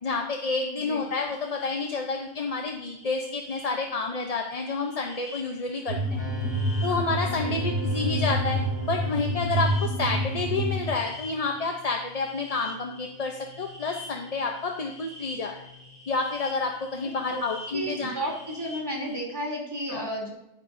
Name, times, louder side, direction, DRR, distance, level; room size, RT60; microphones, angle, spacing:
voice 1, 0.0-6.2 6.8-8.6 8.9-15.7 16.1-18.3 19.9-20.1, left 4 dB, 40° left, 3 dB, 0.8 m, -29 dB
sound 1, 0.9-19.2, left 2 dB, 10° left, 3.0 m, -47 dB
sound 2, 5.9-10.9, right 1 dB, 90° right, 4.1 m, -28 dB
sound 3, 6.2-19.0, left 2 dB, 65° left, 3.1 m, -44 dB
voice 2, 17.7-20.3, right 1 dB, 20° right, -3 dB, 3.1 m, -32 dB
11.5 x 9.9 x 2.6 m, 0.88 s
omnidirectional pair, 1.1 m